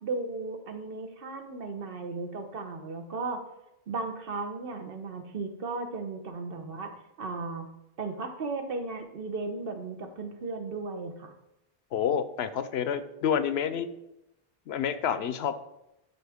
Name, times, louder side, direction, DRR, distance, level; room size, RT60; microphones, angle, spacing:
voice 1, 0.0-3.4 3.9-6.9 7.2-7.7 8.0-11.3, right 3 dB, 65° right, 5 dB, 1.1 m, -35 dB
voice 2, 11.9-13.9 14.7-15.6, left 8 dB, 85° left, 12 dB, 0.9 m, -28 dB
11.0 x 4.1 x 3.5 m, 0.88 s
omnidirectional pair, 1.0 m